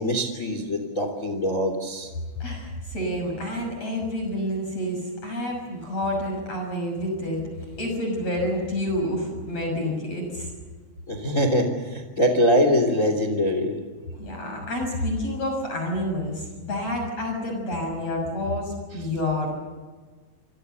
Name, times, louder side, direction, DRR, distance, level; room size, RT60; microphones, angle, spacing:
voice 1, 0.0-2.1 11.1-13.8, equal, 20° left, 6 dB, 2.8 m, -23 dB
voice 2, 2.4-7.4 7.8-10.5 14.1-19.5, left 1 dB, 35° left, 2 dB, 7.3 m, -28 dB
27.0 x 26.5 x 6.9 m, 1.4 s
omnidirectional pair, 4.8 m